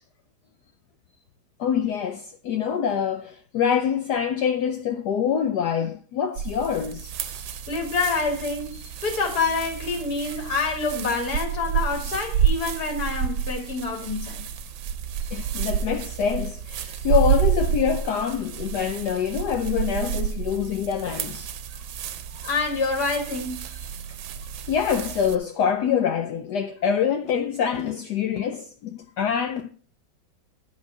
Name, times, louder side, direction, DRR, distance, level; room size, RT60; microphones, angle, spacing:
voice 1, 1.6-7.5 15.3-21.5 24.7-29.7, left 8 dB, 70° left, 1.1 m, -25 dB
sound 1, 6.4-25.4, right 8 dB, 80° right, 1.5 m, -29 dB
voice 2, 7.7-14.4 22.3-23.9, left 4 dB, 50° left, 2.2 m, -27 dB
11.0 x 4.2 x 5.9 m
omnidirectional pair, 2.2 m